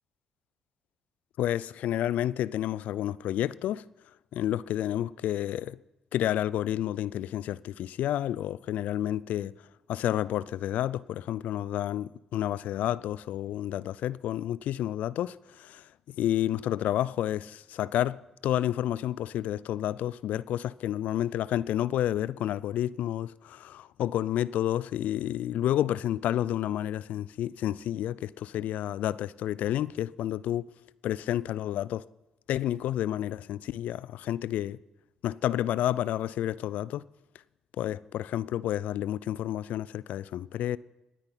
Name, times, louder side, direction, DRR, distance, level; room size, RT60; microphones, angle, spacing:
voice 1, 1.4-3.8 4.3-5.8 6.1-9.5 9.9-30.6 31.0-32.0 32.5-34.8 35.2-37.0 37.8-40.8, left 12 dB, 70° left, 0.4 m, -30 dB
25.5 x 9.8 x 4.0 m
hypercardioid pair, 45°, 3 cm